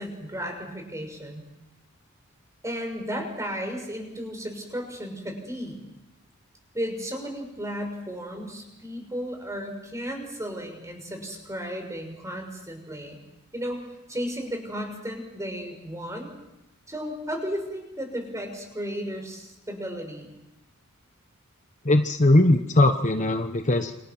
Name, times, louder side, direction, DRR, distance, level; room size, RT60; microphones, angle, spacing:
voice 1, 0.0-1.4 2.6-5.8 6.7-13.2 13.5-13.8 14.1-16.3 16.9-20.3, equal, 15° right, 3 dB, 6.3 m, -34 dB
voice 2, 21.8-23.9, left 1 dB, 35° left, 6 dB, 1.2 m, -20 dB
28.0 x 25.5 x 6.2 m, 0.91 s
head